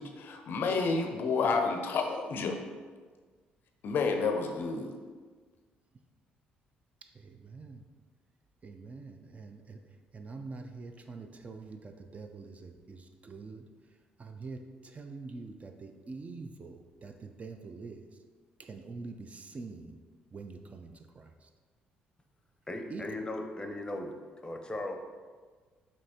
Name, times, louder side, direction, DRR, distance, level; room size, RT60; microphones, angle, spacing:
voice 1, 0.0-2.6 3.8-4.9, left 4 dB, 60° left, 4 dB, 0.5 m, -30 dB
voice 2, 7.2-7.8 8.6-9.8 10.1-13.6 14.2-18.1 18.6-20.0 20.3-21.3 22.9-23.0, right 4 dB, 35° right, 6 dB, 0.4 m, -45 dB
voice 3, 22.7-24.1 24.4-24.9, left 1 dB, 20° left, 4 dB, 0.6 m, -37 dB
5.2 x 2.9 x 2.7 m, 1.5 s
supercardioid pair, 60°, 4 cm